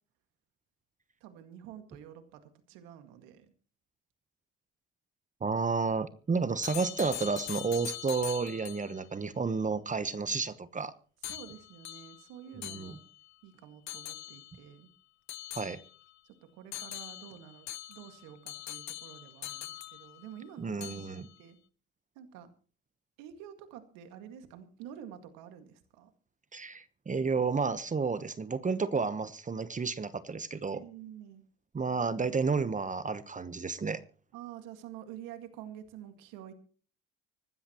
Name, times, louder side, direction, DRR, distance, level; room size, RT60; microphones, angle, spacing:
voice 1, 1.2-3.5 11.2-13.0 13.4-14.9 16.2-21.6 22.2-22.5 23.2-26.1 30.7-31.4 34.3-36.5, right 10 dB, 85° right, 8 dB, 2.0 m, -49 dB
voice 2, 5.4-10.9 12.6-13.0 15.5-15.8 20.6-21.3 26.5-30.8 31.7-34.0, right 4 dB, 25° right, 13 dB, 1.1 m, -31 dB
sound 1, 6.6-9.0 11.2-13.3 13.9-14.6 15.3-16.2 16.7-20.5 20.8-21.4, left 14 dB, 60° left, 0.9 m, -43 dB
25.5 x 13.0 x 3.0 m, 0.40 s
supercardioid pair, 90°, 32 cm